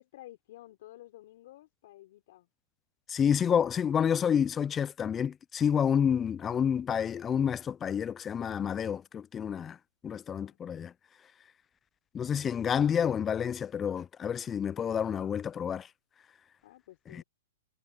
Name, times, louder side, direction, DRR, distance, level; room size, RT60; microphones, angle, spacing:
voice 1, 0.0-2.5 6.0-6.3 10.3-10.6 16.6-17.2, left 15 dB, 55° left, 3.8 m, -53 dB
voice 2, 3.1-9.8 10.0-10.9 12.1-15.9 17.1-17.2, left 8 dB, 20° left, 0.4 m, -29 dB
hypercardioid pair, 130°, 0 cm